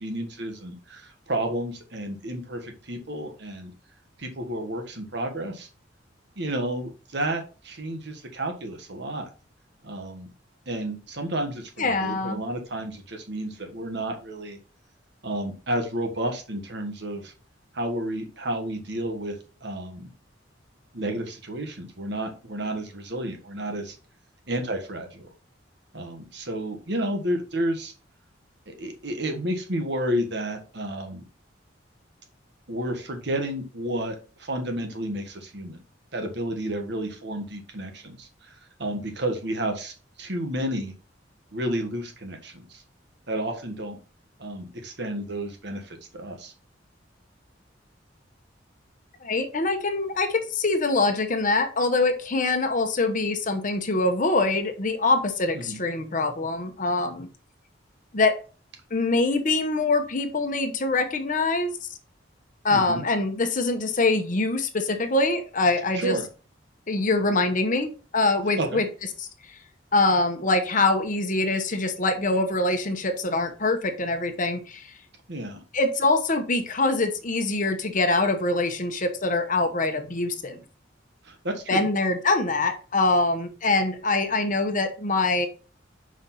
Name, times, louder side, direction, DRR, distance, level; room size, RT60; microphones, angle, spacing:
voice 1, 0.0-3.7 4.2-5.7 6.4-9.3 9.8-10.3 10.7-14.6 15.2-17.3 17.7-20.1 20.9-24.0 24.5-25.3 25.9-27.9 28.7-31.2 32.7-35.8 36.1-40.9 41.5-42.8 43.3-44.0 44.4-46.5 55.5-55.8 62.7-63.0 65.9-66.3 68.6-68.8 75.3-75.6 81.2-81.9, right 1 dB, 65° right, 4 dB, 1.5 m, -31 dB
voice 2, 11.8-12.4 49.2-57.3 58.1-58.4 58.9-61.7 62.6-66.1 66.9-68.9 69.2-69.3 69.9-74.9 75.7-80.6 81.7-85.5, left 2 dB, 45° left, 7 dB, 1.0 m, -24 dB
5.8 x 5.1 x 4.2 m, 0.34 s
head